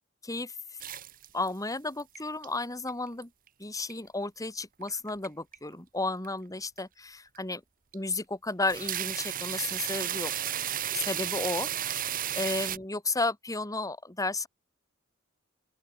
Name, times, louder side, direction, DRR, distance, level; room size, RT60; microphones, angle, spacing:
voice 1, 0.2-0.5 1.3-3.3 3.6-7.6 7.9-10.3 10.9-12.1 12.3-14.5, left 2 dB, 15° left, 2.2 m, -33 dB
sound 1, 0.8-1.7 2.0-2.5 2.9-3.5 3.9-4.0 4.8-5.3 5.5-5.7 6.2-6.3 6.8-6.9 7.3-7.4 7.9-8.2 8.5-12.8, right 11 dB, 45° right, 1.0 m, -33 dB
open air
head